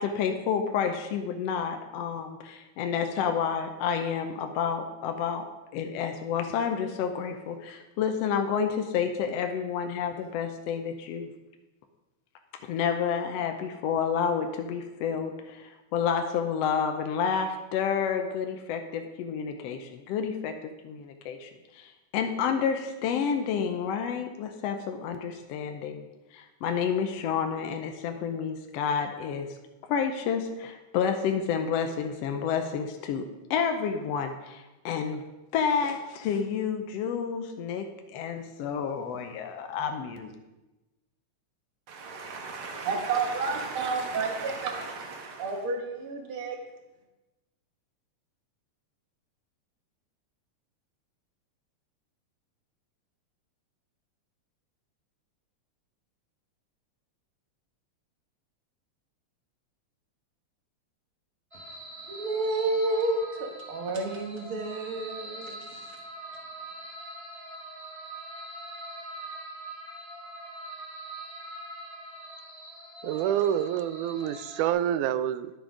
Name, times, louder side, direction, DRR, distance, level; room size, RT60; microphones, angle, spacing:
voice 1, 0.0-5.4 5.7-11.3 12.6-26.0 26.3-29.5 29.9-33.2 33.5-35.2 35.5-37.9 38.1-40.3, left 7 dB, 75° left, 1.6 m, -30 dB
voice 2, 41.9-46.6 62.1-65.8, right 3 dB, 55° right, 1.8 m, -31 dB
sound 1, 61.5-74.7, right 1 dB, 20° right, 0.8 m, -43 dB
voice 3, 73.0-75.5, right 10 dB, 90° right, 2.0 m, -27 dB
10.5 x 7.3 x 5.0 m
omnidirectional pair, 3.4 m